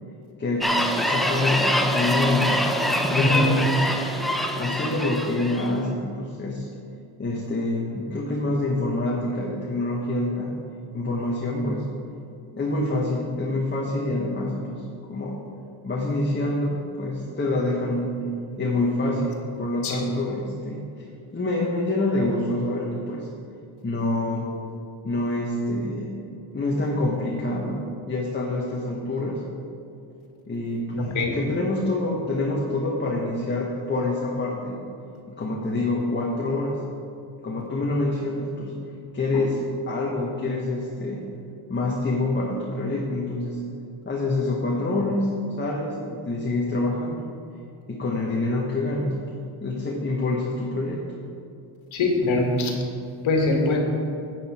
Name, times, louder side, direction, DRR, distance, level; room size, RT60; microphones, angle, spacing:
voice 1, 0.4-2.5 3.1-3.8 4.6-6.7 7.2-10.5 10.9-11.8 12.6-14.8 15.1-15.4 15.8-18.2 18.6-21.0 21.3-23.3 23.8-24.5 25.0-26.3 26.5-27.8 28.1-29.4 30.5-34.8 35.3-36.8 37.4-38.7 39.1-41.3 41.7-43.6 44.0-47.2 47.9-49.2 49.6-51.0, left 2 dB, 20° left, -3 dB, 1.4 m, -26 dB
sound 1, 0.6-5.7, equal, ahead, 0.6 m, -24 dB
voice 2, 3.2-3.5 19.8-20.0 31.1-31.3 39.3-39.4 51.9-52.7 53.2-53.8, left 2 dB, 75° left, 1 dB, 2.1 m, -22 dB
10.5 x 9.2 x 4.4 m, 2.7 s
cardioid pair, 115°, 49 cm